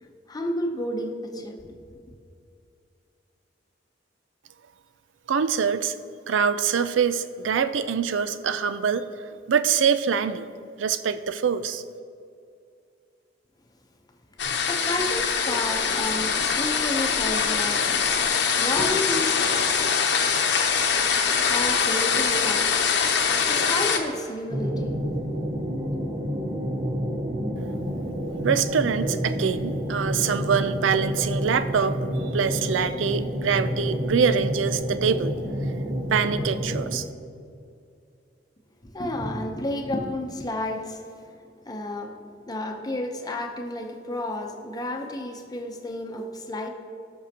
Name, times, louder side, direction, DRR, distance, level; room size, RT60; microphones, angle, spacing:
voice 1, 0.3-1.7 14.7-19.6 21.5-22.8 23.4-25.0 25.9-26.1 38.8-46.7, left 1 dB, 20° left, 3 dB, 0.8 m, -31 dB
voice 2, 5.3-6.0 6.3-9.1 9.5-10.5 10.8-11.8 28.4-32.0 32.3-35.3 36.1-37.1, right 6 dB, 90° right, 12 dB, 0.4 m, -24 dB
sound 1, 14.4-24.0, left 6 dB, 65° left, 0.9 m, -23 dB
sound 2, 24.5-37.0, equal, 35° right, 1.0 m, -29 dB
18.0 x 6.3 x 2.9 m, 2.4 s
head